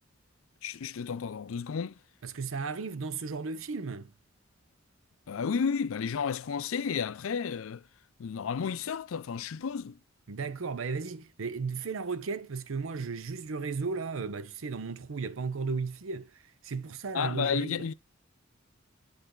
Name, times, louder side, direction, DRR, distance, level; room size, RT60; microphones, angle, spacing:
voice 1, 0.6-2.0 5.3-7.8 8.2-10.0 17.1-17.9, left 6 dB, 80° left, 0.4 m, -32 dB
voice 2, 2.2-4.1 10.3-16.3 16.6-17.8, right 4 dB, 75° right, 0.6 m, -35 dB
10.0 x 3.4 x 3.8 m
head